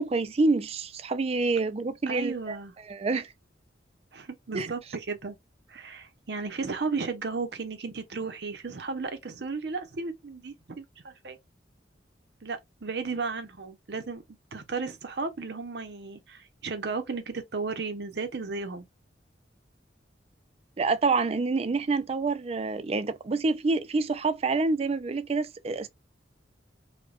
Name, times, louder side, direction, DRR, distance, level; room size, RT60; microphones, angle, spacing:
voice 1, 0.0-2.6 2.9-3.3 4.5-4.7 20.8-25.9, right 3 dB, 35° right, 0.3 m, -27 dB
voice 2, 2.1-2.7 4.1-5.4 5.7-11.4 12.4-14.2 14.5-18.9, right 4 dB, 60° right, 0.7 m, -34 dB
5.0 x 2.2 x 2.3 m
head